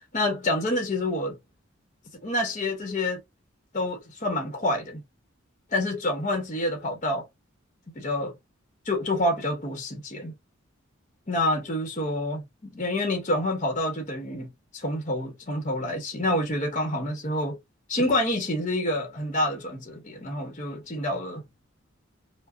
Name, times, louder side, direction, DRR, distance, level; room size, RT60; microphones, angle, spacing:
voice 1, 0.0-1.4 2.2-3.2 3.7-5.0 5.7-7.3 7.9-8.3 8.9-10.3 11.3-17.6 17.9-21.4, left 1 dB, 35° left, 0.9 m, -28 dB
4.8 x 2.0 x 2.5 m
head